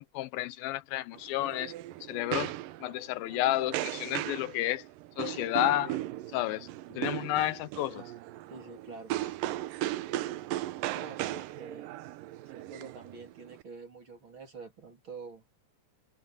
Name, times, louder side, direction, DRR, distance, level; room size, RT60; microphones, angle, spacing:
voice 1, 0.0-1.7 2.0-2.5 2.8-4.8 5.2-6.0 6.3-6.7 6.9-8.1, left 15 dB, 85° left, 2.6 m, -31 dB
sound 1, 1.1-13.6, right 15 dB, 80° right, 2.3 m, -37 dB
voice 2, 8.5-9.1 10.9-11.9 12.5-15.4, right 4 dB, 35° right, 3.7 m, -46 dB
open air
omnidirectional pair, 4.2 m